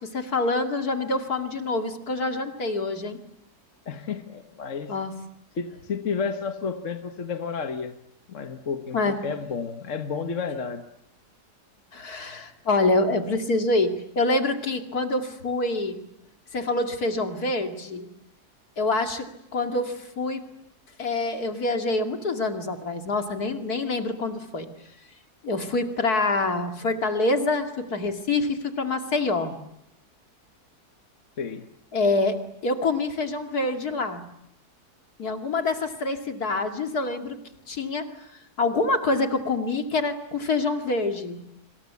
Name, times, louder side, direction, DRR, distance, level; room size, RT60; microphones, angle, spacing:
voice 1, 0.0-3.2 4.9-5.1 8.9-9.2 11.9-16.0 16.5-18.1 18.8-20.4 21.0-24.7 25.4-29.5 31.9-34.2 35.2-37.4 37.7-38.1 38.6-41.4, left 2 dB, 75° left, 5 dB, 3.0 m, -26 dB
voice 2, 3.8-4.9 5.5-8.0 8.3-10.9 31.4-31.7, left 5 dB, 55° left, 7 dB, 1.6 m, -31 dB
27.0 x 26.5 x 8.4 m, 0.79 s
omnidirectional pair, 1.6 m